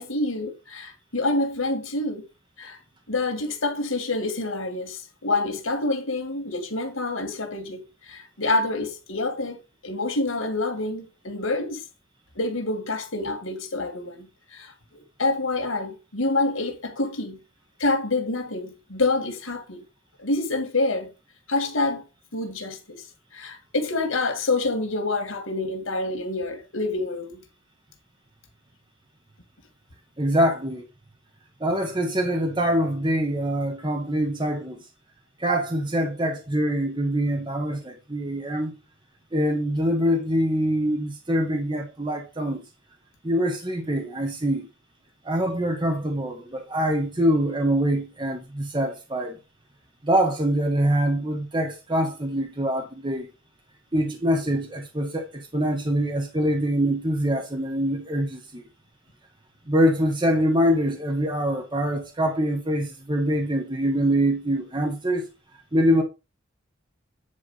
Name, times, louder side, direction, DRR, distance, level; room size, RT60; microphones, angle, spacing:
voice 1, 0.0-2.3 2.6-2.8 3.1-11.8 12.4-17.4 17.8-19.8 20.2-21.1 21.5-22.0 22.3-23.0 23.3-27.4, left 2 dB, 85° left, 2.2 m, -27 dB
voice 2, 30.2-30.9 31.6-34.8 35.4-38.8 39.3-42.6 43.2-44.7 45.2-49.4 50.0-53.3 53.9-58.6 59.7-65.3 65.7-66.0, equal, 25° right, 1.4 m, -24 dB
9.8 x 3.6 x 5.6 m
head